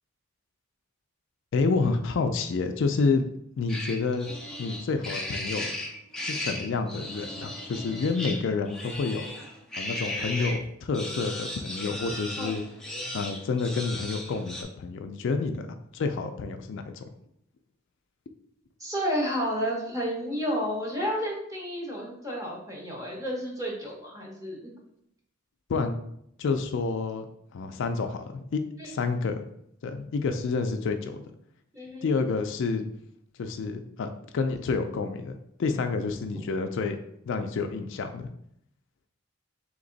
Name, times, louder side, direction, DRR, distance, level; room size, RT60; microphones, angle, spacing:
voice 1, 1.5-3.3 3.6-4.3 4.6-5.7 6.2-9.3 9.8-12.6 13.1-17.0 25.7-26.0 26.4-27.3 27.5-29.3 29.8-31.2 32.0-32.9 33.4-37.0 37.3-38.3, left 4 dB, 60° left, 6 dB, 0.4 m, -29 dB
sound 1, 3.7-10.6 10.9-14.6, left 1 dB, 5° left, 0.5 m, -36 dB
voice 2, 18.8-24.7 28.8-28.9 31.7-32.1, equal, 15° right, -2 dB, 1.0 m, -31 dB
3.4 x 3.0 x 3.9 m, 0.73 s
head